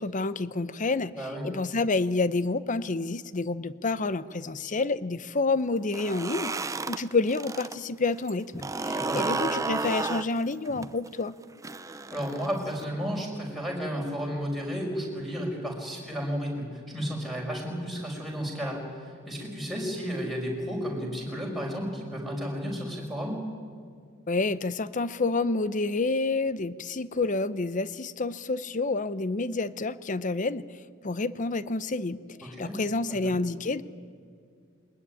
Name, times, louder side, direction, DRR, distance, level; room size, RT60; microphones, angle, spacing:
voice 1, 0.0-6.5 6.9-11.3 24.3-30.7 31.0-33.8, left 3 dB, 40° left, 16 dB, 0.7 m, -29 dB
voice 2, 1.1-1.5 8.8-9.3 11.9-23.4 32.4-32.8 33.1-33.4, equal, ahead, -1 dB, 5.5 m, -33 dB
sound 1, 5.8-7.8 8.1-12.8, right 3 dB, 15° right, 0.6 m, -32 dB
21.5 x 20.5 x 9.8 m, 2.2 s
head